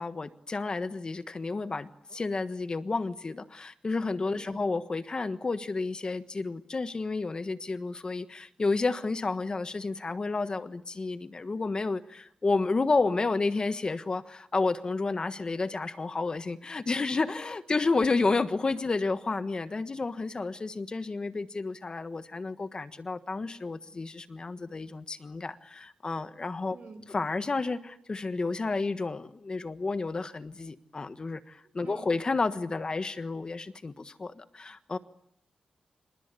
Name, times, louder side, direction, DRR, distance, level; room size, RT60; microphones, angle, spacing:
voice 1, 0.0-26.8 27.1-35.0, left 3 dB, 35° left, 11 dB, 1.4 m, -31 dB
voice 2, 4.3-4.7 26.7-27.0 31.8-32.1, right 4 dB, 60° right, 11 dB, 6.2 m, -47 dB
28.0 x 25.5 x 8.3 m, 0.74 s
wide cardioid pair, 125°, 3 cm